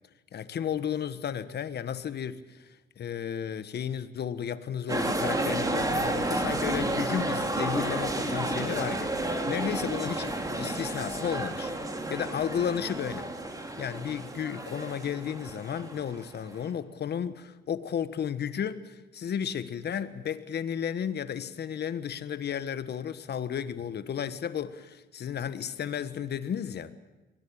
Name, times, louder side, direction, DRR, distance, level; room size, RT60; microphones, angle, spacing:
voice 1, 0.3-11.7 12.1-13.3 13.8-26.9, left 8 dB, 55° left, 1.4 m, -33 dB
sound 1, 4.9-16.7, right 1 dB, 15° right, 2.9 m, -31 dB
23.0 x 17.5 x 8.8 m
cardioid pair, 90°, 20 cm